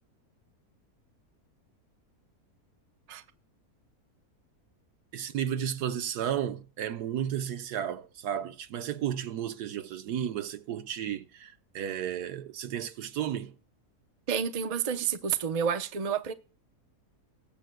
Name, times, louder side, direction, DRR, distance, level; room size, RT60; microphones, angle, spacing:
voice 1, 5.1-13.5, right 9 dB, 85° right, 1.4 m, -33 dB
voice 2, 14.3-16.3, right 7 dB, 40° right, 0.5 m, -29 dB
19.5 x 7.7 x 2.2 m
omnidirectional pair, 1.7 m